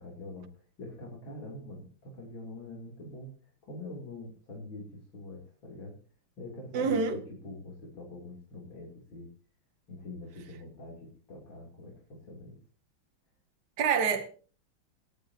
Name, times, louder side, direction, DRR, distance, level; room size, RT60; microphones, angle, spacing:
voice 1, 0.0-3.3 3.6-6.0 6.4-9.3 9.9-12.6, left 2 dB, 75° left, 4.1 m, -44 dB
voice 2, 6.7-7.2 13.8-14.3, right 6 dB, 60° right, 1.8 m, -26 dB
27.5 x 10.0 x 2.9 m
omnidirectional pair, 2.2 m